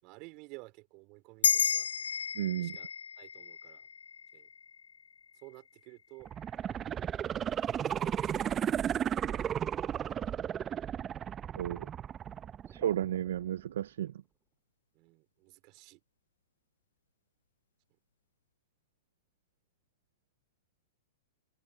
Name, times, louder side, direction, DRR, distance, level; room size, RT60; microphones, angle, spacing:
voice 1, 0.0-1.9 2.6-2.9 3.2-3.9 4.3-4.5 5.4-6.3 8.0-9.6 10.0-10.4 14.9-16.0, right 27 dB, 45° right, 4.1 m, -53 dB
sound 1, 1.4-6.1, left 7 dB, 85° left, 0.3 m, -33 dB
voice 2, 2.3-2.8 11.6-11.9 12.7-14.1, right 11 dB, 70° right, 0.3 m, -33 dB
sound 2, 6.2-13.2 13.6-13.7, right 9 dB, 25° right, 0.6 m, -34 dB
hypercardioid pair, 125°, 0 cm